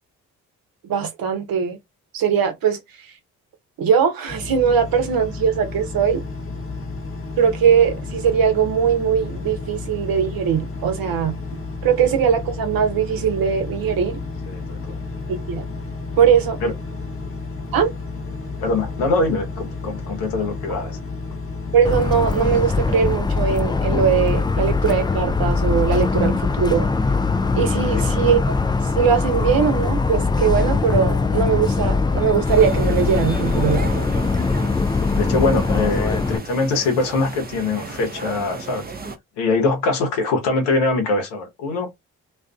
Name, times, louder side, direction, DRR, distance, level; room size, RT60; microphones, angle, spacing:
voice 1, 0.8-1.8 2.1-2.8 3.8-6.2 7.4-11.4 11.8-14.2 15.3-15.7 16.2-16.6 17.7-17.9 21.7-26.9 27.5-28.6 28.9-34.1, right 7 dB, 55° right, 0.8 m, -20 dB
Engine, 4.3-23.2, left 3 dB, 30° left, 1.0 m, -32 dB
voice 2, 14.5-15.0 16.6-16.7 18.6-21.0 35.1-38.9 39.4-41.9, left 3 dB, 75° left, 1.0 m, -23 dB
Motor vehicle (road) / Siren, 21.8-36.4, left 4 dB, 10° left, 0.3 m, -21 dB
sound 1, 32.4-39.2, right 4 dB, 20° right, 0.7 m, -35 dB
2.5 x 2.4 x 2.3 m
hypercardioid pair, 40°, 41 cm